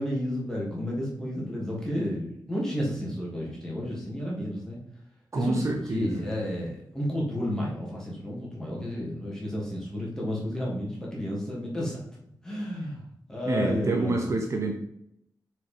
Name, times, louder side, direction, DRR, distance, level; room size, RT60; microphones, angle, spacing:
voice 1, 0.0-4.8 5.4-12.0 12.4-13.0 13.3-14.3, equal, 5° left, -4 dB, 2.7 m, -32 dB
voice 2, 5.3-6.3 13.4-14.8, right 2 dB, 40° right, 2 dB, 0.9 m, -27 dB
6.6 x 4.9 x 5.2 m, 0.76 s
wide cardioid pair, 155°, 7 cm